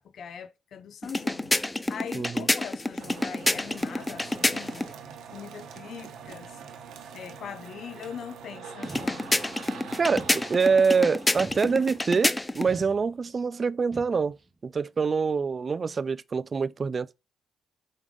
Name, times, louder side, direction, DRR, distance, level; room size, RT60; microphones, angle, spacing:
voice 1, 0.0-1.6 1.9-4.9 5.3-6.6 7.1-9.3, left 7 dB, 65° left, 0.6 m, -41 dB
sound 1, 1.0-4.9 8.8-12.7, left 1 dB, 15° left, 0.5 m, -28 dB
voice 2, 2.1-2.5 10.0-14.4 14.6-17.2, right 5 dB, 40° right, 0.3 m, -25 dB
sound 2, 2.9-12.5, right 6 dB, 75° right, 1.0 m, -45 dB
sound 3, 8.8-9.6 10.1-10.9 11.4-12.2 12.6-13.5 13.9-14.5, right 2 dB, 25° right, 0.9 m, -45 dB
5.2 x 4.8 x 3.7 m
supercardioid pair, 70°, 0 cm